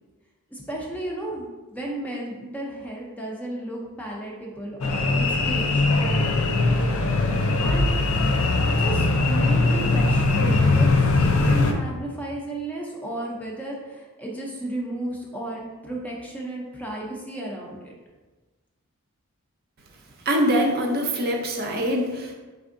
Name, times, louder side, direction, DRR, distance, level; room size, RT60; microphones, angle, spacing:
voice 1, 0.5-6.1 7.6-7.9 8.7-17.9, right 1 dB, 5° left, -2 dB, 0.4 m, -34 dB
sound 1, 4.8-11.7, left 2 dB, 65° left, 0.4 m, -21 dB
voice 2, 20.3-22.3, equal, 45° right, 1 dB, 0.5 m, -23 dB
4.4 x 3.4 x 2.5 m, 1.3 s
head